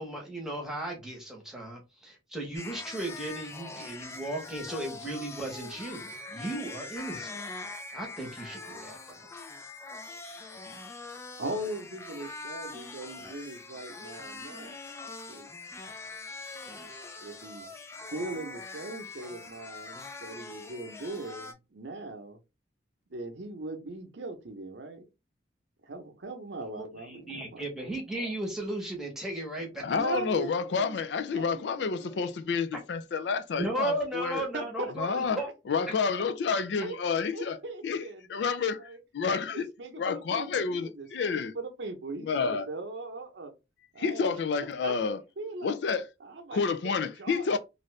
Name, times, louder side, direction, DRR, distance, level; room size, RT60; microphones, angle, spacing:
voice 1, 0.0-7.4 7.9-9.3 26.7-29.7 30.1-30.2 33.6-35.1 35.4-35.5 35.9-36.0, right 1 dB, 5° right, 1.0 m, -36 dB
sound 1, 2.5-21.5, left 3 dB, 15° left, 0.4 m, -43 dB
voice 2, 11.4-14.8 15.3-15.5 17.2-17.7 18.1-22.4 23.1-25.1 25.8-27.6 30.0-31.0 31.3-32.2 34.5-35.5 36.8-37.0 37.3-39.0 39.3-43.5 43.9-44.9 45.4-45.8 46.2-47.6, right 2 dB, 85° right, 0.7 m, -40 dB
voice 3, 29.8-34.5 35.0-35.4 35.7-37.6 37.8-38.0 38.3-39.7 40.0-41.5 42.2-42.7 44.0-45.2 45.6-46.1 46.5-47.6, left 5 dB, 75° left, 0.4 m, -29 dB
2.7 x 2.5 x 3.2 m
head